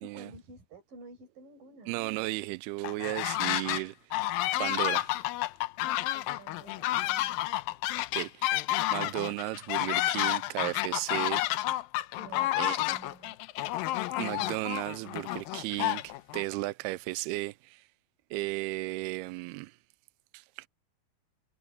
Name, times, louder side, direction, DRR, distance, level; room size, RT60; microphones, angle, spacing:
voice 1, 0.0-2.0 6.1-7.5 12.2-13.4, right 3 dB, 55° right, 6.9 m, -51 dB
voice 2, 1.9-4.0 4.6-5.2 8.1-8.6 8.9-11.4 12.6-12.8 14.2-17.9 18.3-19.8 20.3-20.7, right 21 dB, 85° right, 2.3 m, -34 dB
sound 1, 2.8-3.8 4.1-16.4, left 16 dB, 85° left, 2.1 m, -30 dB
omnidirectional pair, 4.9 m